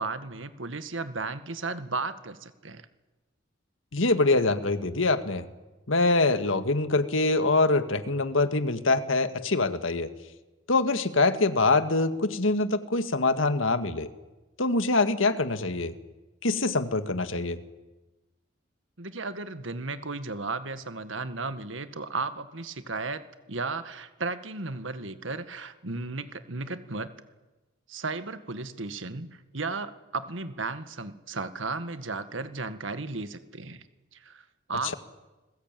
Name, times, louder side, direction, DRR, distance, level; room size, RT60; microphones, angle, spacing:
voice 1, 0.0-2.8 19.0-27.1 27.9-33.8 34.1-34.9, right 3 dB, 80° right, 11 dB, 1.8 m, -34 dB
voice 2, 3.9-5.5 5.9-10.1 10.7-14.1 14.6-15.9 16.4-17.6, left 3 dB, 90° left, 10 dB, 1.8 m, -24 dB
29.5 x 21.0 x 9.2 m, 1.1 s
head